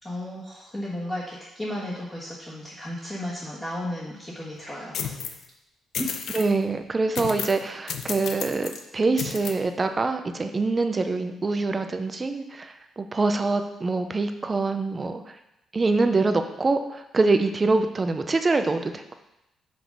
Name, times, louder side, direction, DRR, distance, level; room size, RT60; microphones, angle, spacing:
voice 1, 0.0-5.1 6.0-6.4, left 1 dB, 15° left, -9 dB, 1.5 m, -34 dB
sound 1, 4.9-5.4 5.9-6.5 7.1-7.6 7.9-8.8 9.2-9.5, left 7 dB, 65° left, 0.6 m, -32 dB
voice 2, 6.3-15.4 15.7-19.1, right 3 dB, 25° right, 7 dB, 0.5 m, -25 dB
6.0 x 4.8 x 5.3 m, 0.88 s
cardioid pair, 145°, 0 cm